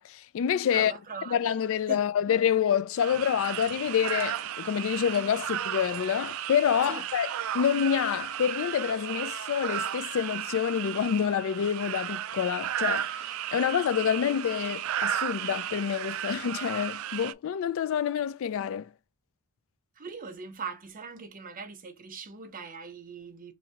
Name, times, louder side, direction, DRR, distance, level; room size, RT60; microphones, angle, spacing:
voice 1, 0.0-0.9 1.3-7.3 7.5-13.2 13.5-18.9, left 8 dB, 65° left, 0.3 m, -27 dB
voice 2, 0.7-1.4 1.9-2.0 6.9-7.0 20.0-23.5, right 5 dB, 40° right, 0.7 m, -40 dB
sound 1, 3.0-17.3, right 11 dB, 70° right, 0.3 m, -34 dB
2.8 x 2.7 x 4.2 m
head